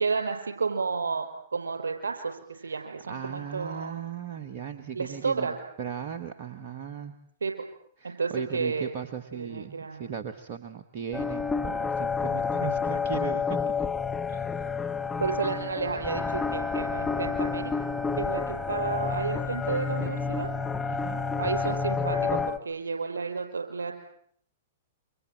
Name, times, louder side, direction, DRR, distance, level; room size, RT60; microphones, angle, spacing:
voice 1, 0.0-4.0 5.0-5.5 7.4-7.5 8.0-8.9 9.3-10.0 15.2-17.7 18.2-20.5 21.4-23.9, right 4 dB, 75° right, 6 dB, 5.7 m, -31 dB
voice 2, 2.6-7.1 8.0-13.7 14.3-14.7 20.9-21.2, right 8 dB, 50° right, 8 dB, 1.8 m, -37 dB
sound 1, 11.1-22.6, left 5 dB, 10° left, 1.5 m, -29 dB
28.5 x 25.5 x 7.7 m, 0.63 s
figure-of-eight pair, 105°, 0 cm